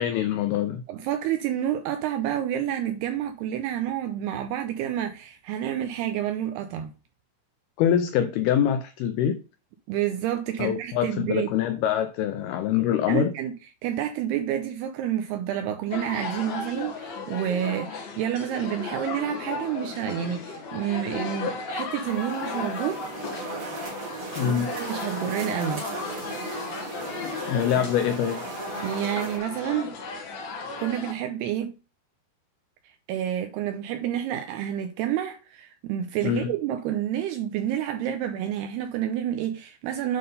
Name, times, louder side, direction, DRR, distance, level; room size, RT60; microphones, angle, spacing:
voice 1, 0.0-0.8 7.8-9.4 10.6-13.3 24.4-24.7 27.2-28.4 36.2-36.5, left 9 dB, 85° left, 2.2 m, -24 dB
voice 2, 0.9-6.9 9.9-11.5 13.1-13.5 13.8-23.1 24.4-25.8 27.8-27.9 28.8-30.0 30.8-31.7 32.8-40.2, right 10 dB, 80° right, 2.4 m, -29 dB
sound 1, 15.9-31.1, left 4 dB, 65° left, 1.8 m, -35 dB
sound 2, 22.0-29.4, right 3 dB, 45° right, 1.6 m, -36 dB
8.5 x 3.8 x 5.3 m
omnidirectional pair, 5.1 m